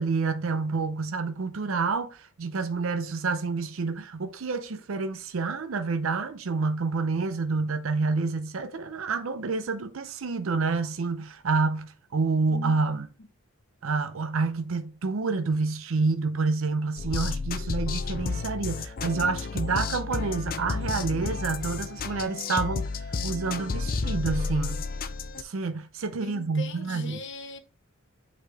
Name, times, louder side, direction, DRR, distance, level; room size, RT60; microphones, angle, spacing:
voice 1, 0.0-13.1 13.8-24.9 25.4-27.2, right 4 dB, 70° right, 0.6 m, -28 dB
sound 1, 17.0-25.4, left 4 dB, 45° left, 0.6 m, -31 dB
voice 2, 26.2-27.6, left 2 dB, 60° left, 1.0 m, -40 dB
8.1 x 4.2 x 3.3 m
head